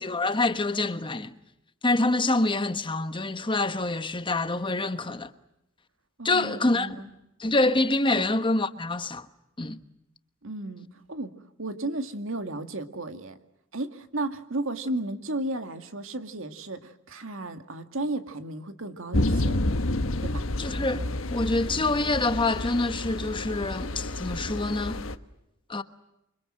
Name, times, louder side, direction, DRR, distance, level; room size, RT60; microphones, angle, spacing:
voice 1, 0.0-1.3 1.8-5.3 6.2-7.0 7.4-9.3 9.6-9.8 20.6-25.0 25.7-25.8, left 2 dB, 25° left, 1.2 m, -26 dB
voice 2, 6.2-7.1 8.1-8.3 10.4-13.4 13.7-19.6 20.2-20.5, right 2 dB, 70° right, 2.2 m, -34 dB
sound 1, 19.1-25.2, left 1 dB, 70° left, 1.3 m, -29 dB
28.5 x 25.5 x 7.6 m
head